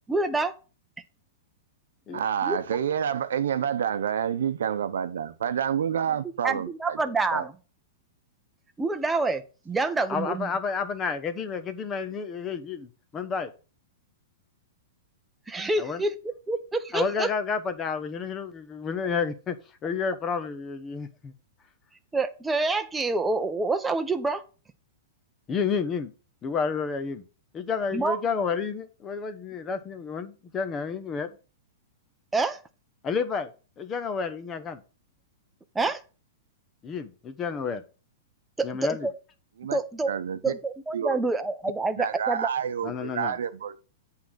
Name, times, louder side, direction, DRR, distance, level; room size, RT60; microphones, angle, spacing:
voice 1, 0.1-0.5 2.1-2.6 6.4-7.5 8.8-10.5 15.5-17.3 22.1-24.4 27.9-28.2 32.3-32.6 35.7-36.0 38.6-39.1 39.7-40.1 40.4-42.5, right 3 dB, 10° right, 0.8 m, -27 dB
voice 2, 2.1-7.0 7.3-7.5 39.6-39.8 40.1-40.5 40.9-41.2 42.0-43.8, right 8 dB, 80° right, 0.8 m, -28 dB
voice 3, 10.1-13.5 15.8-16.0 16.9-19.6 19.8-21.3 25.5-26.1 26.4-27.2 27.5-31.3 33.0-33.5 33.8-34.8 36.8-37.8 38.6-39.1 42.8-43.4, left 5 dB, 25° left, 1.0 m, -30 dB
8.5 x 3.8 x 6.3 m
hypercardioid pair, 135°, 0 cm